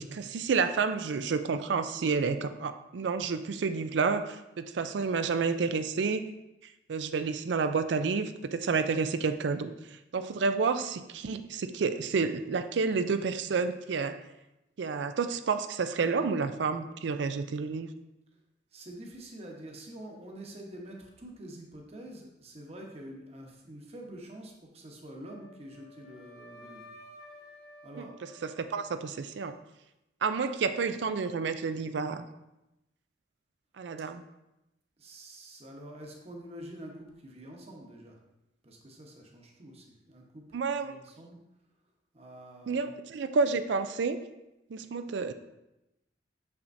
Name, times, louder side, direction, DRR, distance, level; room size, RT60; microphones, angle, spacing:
voice 1, 0.0-6.2 6.9-9.7 10.1-14.2 14.8-17.9 28.0-28.1 28.6-29.6 30.2-32.3 33.8-34.2 40.5-41.0 42.7-44.2 44.7-45.3, right 5 dB, 75° right, 10 dB, 0.4 m, -30 dB
voice 2, 18.7-26.9 27.8-28.1 35.0-38.2 38.6-41.4 42.1-42.9, right 1 dB, 35° right, 0 dB, 1.0 m, -47 dB
Wind instrument woodwind instrument, 25.2-29.3, left 1 dB, 60° left, 1.4 m, -53 dB
6.4 x 5.8 x 2.6 m, 0.93 s
head